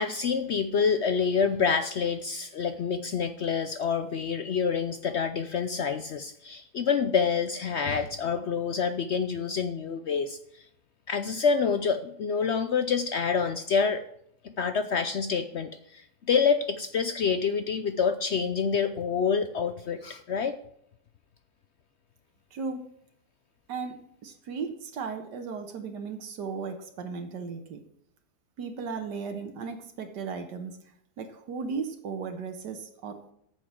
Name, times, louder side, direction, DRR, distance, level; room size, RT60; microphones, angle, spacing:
voice 1, 0.0-10.4 11.1-14.0 14.4-20.6, left 6 dB, 65° left, 10 dB, 0.7 m, -27 dB
voice 2, 22.5-22.8 23.7-27.8 28.6-30.8 31.2-33.3, right 5 dB, 85° right, 6 dB, 1.7 m, -36 dB
8.9 x 7.2 x 7.5 m, 0.71 s
omnidirectional pair, 1.8 m